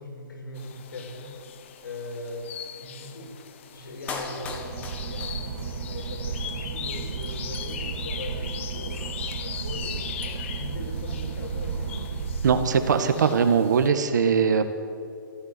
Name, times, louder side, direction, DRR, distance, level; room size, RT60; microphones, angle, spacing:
voice 1, 0.0-1.3 1.8-2.5 2.8-3.4 3.7-12.5, left 2 dB, 65° left, 3 dB, 5.4 m, -40 dB
sound 1, 0.5-13.9, left 9 dB, 35° left, 1.0 m, -40 dB
Clapping, 4.1-6.1 6.3-6.4, left 3 dB, 10° left, 1.4 m, -37 dB
Boat Water vehicle / Engine, 4.4-13.3, right 5 dB, 75° right, 3.8 m, -33 dB
voice 2, 12.4-14.6, right 6 dB, 55° right, 8 dB, 1.8 m, -21 dB
22.0 x 14.5 x 8.6 m, 2.4 s
hypercardioid pair, 170°, 12 cm